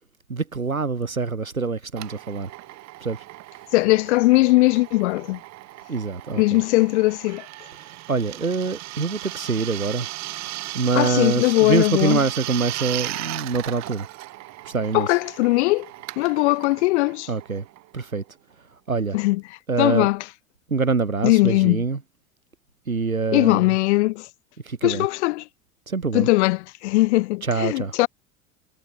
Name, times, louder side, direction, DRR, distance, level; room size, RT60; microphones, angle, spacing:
voice 1, 0.3-2.5 3.0-3.2 5.9-6.6 7.8-10.1 10.7-14.1 14.6-15.1 17.3-17.6 17.9-18.2 18.9-19.2 19.7-20.1 20.7-22.0 22.9-23.8 24.6-25.1 25.9-26.3 27.4-27.9, right 4 dB, 85° right, 1.7 m, -25 dB
Drill, 2.0-18.3, right 18 dB, 40° right, 2.5 m, -36 dB
voice 2, 3.7-5.4 6.4-7.5 11.0-12.2 14.9-15.9 16.2-17.3 19.1-19.4 19.8-20.2 21.2-21.8 23.3-24.3 24.8-25.4 26.1-28.1, left 21 dB, 55° left, 1.2 m, -20 dB
figure-of-eight pair, 75°, 41 cm